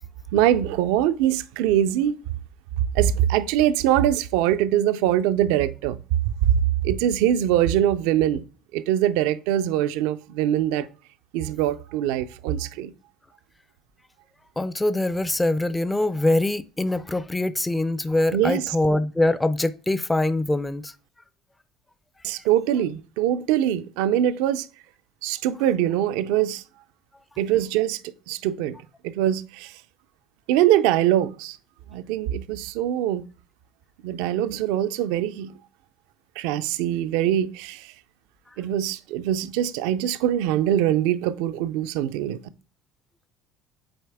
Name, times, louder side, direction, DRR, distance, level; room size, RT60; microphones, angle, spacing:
voice 1, 0.3-2.2 2.9-6.0 6.5-8.4 8.7-10.9 11.3-12.9 18.3-18.8 22.2-24.7 25.2-26.6 27.4-28.0 28.3-28.8 29.0-29.7 30.5-31.6 31.9-33.3 34.0-35.5 36.4-37.9 38.6-42.4, right 11 dB, 80° right, 0.4 m, -23 dB
voice 2, 14.6-20.9, left 2 dB, 10° left, 0.4 m, -23 dB
7.7 x 4.0 x 3.5 m
supercardioid pair, 85°, 0 cm